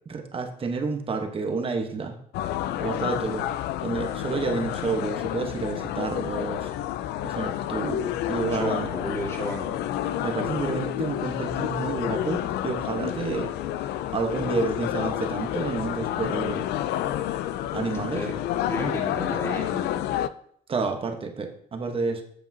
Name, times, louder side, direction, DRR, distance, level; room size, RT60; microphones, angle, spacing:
voice 1, 0.1-2.2 2.8-3.4 3.8-6.7 7.2-8.9 10.2-13.5 14.1-16.6 17.7-18.2 20.7-22.2, right 4 dB, 35° right, 5 dB, 1.1 m, -29 dB
sound 1, 2.3-20.3, left 12 dB, 75° left, 0.4 m, -29 dB
voice 2, 8.5-9.8 17.0-17.2 18.1-18.4 18.7-20.0, left 1 dB, 15° left, 0 dB, 1.8 m, -32 dB
8.2 x 6.9 x 2.8 m, 0.62 s
cardioid pair, 110°, 17 cm